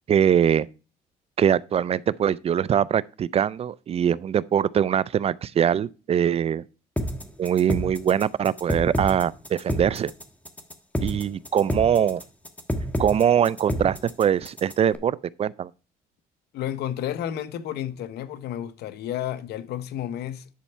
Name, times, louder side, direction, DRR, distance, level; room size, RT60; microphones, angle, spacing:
voice 1, 0.1-0.7 1.4-6.6 7.4-10.1 11.0-12.2 13.0-15.7, right 9 dB, 35° right, 0.4 m, -22 dB
sound 1, 7.0-14.9, equal, 10° left, 1.2 m, -29 dB
voice 2, 16.5-20.5, left 11 dB, 75° left, 0.9 m, -31 dB
10.0 x 4.2 x 5.6 m
cardioid pair, 110°, 17 cm